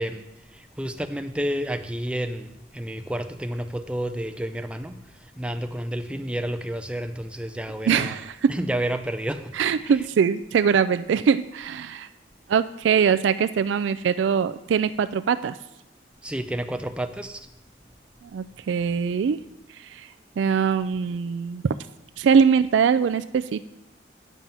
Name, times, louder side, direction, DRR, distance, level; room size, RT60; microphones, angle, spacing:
voice 1, 0.0-5.0 5.4-8.1 8.5-9.5 16.2-17.5, right 1 dB, 5° right, 8 dB, 0.5 m, -30 dB
voice 2, 7.9-8.5 9.5-12.1 12.5-15.6 18.2-19.4 19.8-20.1 20.4-21.7 22.2-23.6, right 6 dB, 80° right, 13 dB, 0.3 m, -22 dB
9.2 x 7.4 x 5.4 m, 0.91 s
head